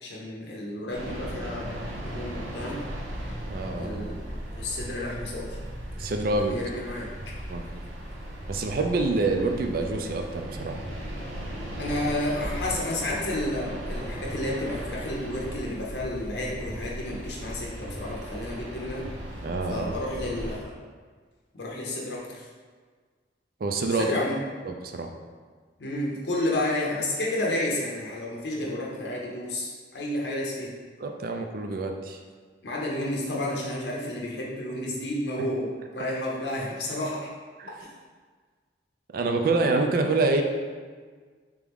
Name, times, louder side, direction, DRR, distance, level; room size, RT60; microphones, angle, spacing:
voice 1, 0.0-1.8 2.0-2.8 3.8-4.2 4.5-5.6 6.4-7.1 11.8-19.1 19.7-20.7 21.5-22.5 23.9-24.4 25.8-30.7 32.6-37.3, left 1 dB, 70° left, -3 dB, 0.6 m, -31 dB
sound 1, 0.9-20.6, equal, 85° right, 0.7 m, -37 dB
voice 2, 3.5-4.1 6.0-6.6 7.3-7.8 8.5-10.8 19.4-19.9 23.6-24.1 24.7-25.1 31.0-32.2 35.4-35.5 37.6-37.7 39.1-40.4, right 3 dB, 55° right, 4 dB, 0.4 m, -27 dB
3.5 x 3.0 x 3.5 m, 1.5 s
head